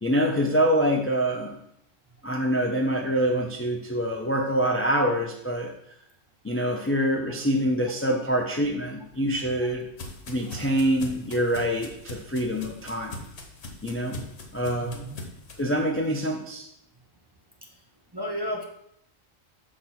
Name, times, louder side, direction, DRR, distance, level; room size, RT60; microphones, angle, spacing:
voice 1, 0.0-1.6 2.2-5.7 6.4-9.8 10.3-13.3 13.8-14.2 14.5-15.1 15.6-16.7, equal, 15° left, 2 dB, 0.4 m, -25 dB
sound 1, 9.0-15.6, left 2 dB, 55° left, 1.3 m, -42 dB
voice 2, 10.3-10.7 14.8-15.2 17.6-17.7 18.1-18.6, equal, 25° right, 0 dB, 0.6 m, -34 dB
6.6 x 3.6 x 5.9 m, 0.74 s
omnidirectional pair, 1.3 m